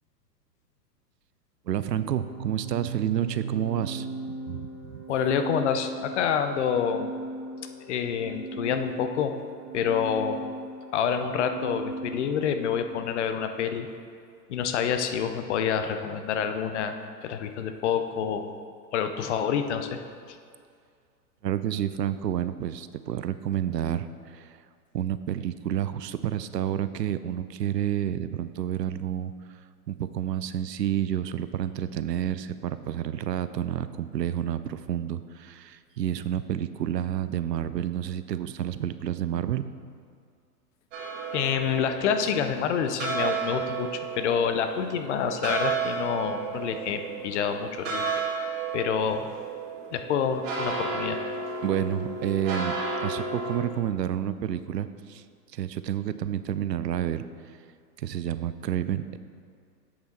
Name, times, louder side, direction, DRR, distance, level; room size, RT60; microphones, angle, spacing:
voice 1, 1.7-4.1 4.5-5.0 21.4-24.6 24.9-29.3 29.9-39.7 51.6-55.2 55.5-57.3 58.0-59.2, right 10 dB, 80° right, 13 dB, 0.6 m, -29 dB
Organ, 2.1-12.9, right 3 dB, 35° right, 1.7 m, -38 dB
voice 2, 5.1-7.1 7.9-9.3 9.7-10.4 10.9-13.9 14.5-16.9 17.2-18.4 18.9-20.0 41.3-48.1 48.7-49.3 49.9-51.2, left 7 dB, 45° left, 8 dB, 0.7 m, -27 dB
sound 1, 40.9-53.6, right 4 dB, 50° right, 1.9 m, -33 dB
7.9 x 6.8 x 4.2 m, 2.2 s
hypercardioid pair, 115°, 49 cm